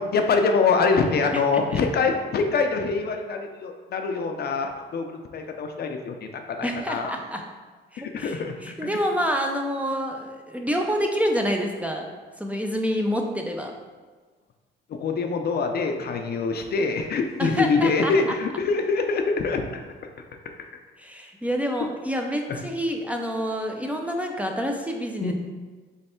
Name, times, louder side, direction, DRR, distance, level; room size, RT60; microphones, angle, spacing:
voice 1, 0.0-7.2 8.0-8.9 14.9-19.8 22.5-22.6 25.2-25.3, left 4 dB, 55° left, 4 dB, 0.5 m, -24 dB
voice 2, 1.3-1.8 6.6-7.4 7.9-8.3 8.6-12.1 12.4-13.7 17.4-18.1 21.0-25.3, equal, 5° right, 2 dB, 0.5 m, -27 dB
3.4 x 3.2 x 4.3 m, 1.4 s
cardioid pair, 90°, 20 cm